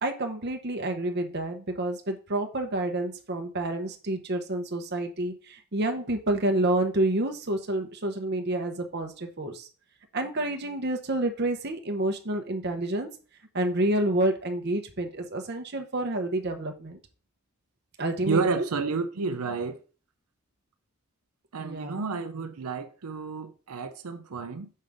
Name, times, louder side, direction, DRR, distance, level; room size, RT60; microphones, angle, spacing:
voice 1, 0.0-9.7 10.1-13.1 13.5-17.0 18.0-18.6 21.6-22.0, right 1 dB, 50° right, 0.9 m, -29 dB
voice 2, 18.2-19.8 21.5-24.7, right 4 dB, 90° right, 0.6 m, -30 dB
6.5 x 5.4 x 3.5 m
head